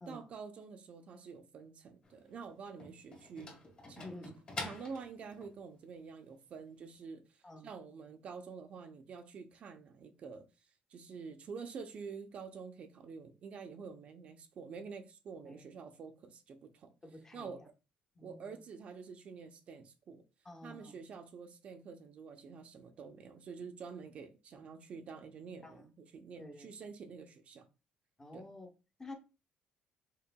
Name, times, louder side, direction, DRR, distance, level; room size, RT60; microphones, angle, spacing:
voice 1, 0.1-3.5 3.9-4.1 4.6-10.4 10.9-16.9 17.3-17.6 18.2-20.2 20.6-27.6 28.3-28.5, right 5 dB, 45° right, 0.6 m, -48 dB
sound 1, 2.0-5.6, left 3 dB, 35° left, 1.8 m, -46 dB
voice 2, 4.0-4.4 7.4-7.7 15.4-15.6 17.0-17.7 18.1-18.6 20.4-21.0 25.6-25.8 26.4-26.7 28.2-28.7 29.0-29.1, left 1 dB, 20° left, 1.1 m, -50 dB
5.6 x 3.8 x 2.2 m
cardioid pair, 135°, 3 cm